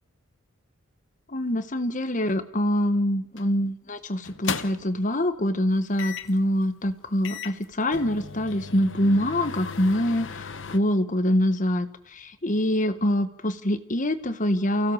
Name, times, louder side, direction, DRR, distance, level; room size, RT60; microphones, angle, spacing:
voice 1, 1.3-14.9, left 1 dB, 40° left, 11 dB, 1.3 m, -25 dB
sound 1, 3.4-3.6 4.2-5.0 6.0-6.4 6.9-7.0 7.2-10.8, left 6 dB, 60° left, 1.0 m, -36 dB
29.0 x 16.0 x 6.4 m, 0.74 s
head